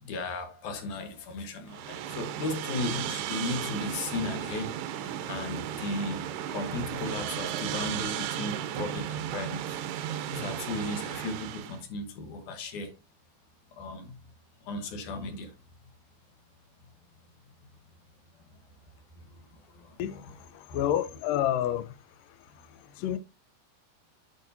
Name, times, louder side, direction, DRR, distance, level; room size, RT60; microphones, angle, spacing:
voice 1, 0.0-9.8 10.3-13.0 13.7-14.2 14.6-15.6 18.5-18.6 19.2-20.5, left 2 dB, 65° left, 2.2 m, -36 dB
sound 1, 1.7-11.8, right 10 dB, 90° right, 2.9 m, -35 dB
voice 2, 20.0-21.9 23.0-23.2, left 11 dB, 90° left, 1.9 m, -29 dB
9.0 x 5.8 x 2.7 m
omnidirectional pair, 4.7 m